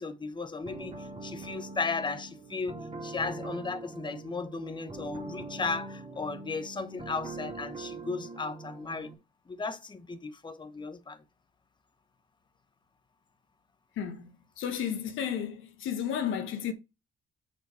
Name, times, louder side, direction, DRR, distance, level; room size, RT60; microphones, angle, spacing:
voice 1, 0.0-9.1 9.5-11.2, left 4 dB, 25° left, 1.1 m, -35 dB
sound 1, 0.6-9.1, right 3 dB, 30° right, 2.5 m, -42 dB
voice 2, 14.0-16.7, left 8 dB, 80° left, 1.2 m, -33 dB
6.7 x 5.9 x 4.3 m
cardioid pair, 90°, 20 cm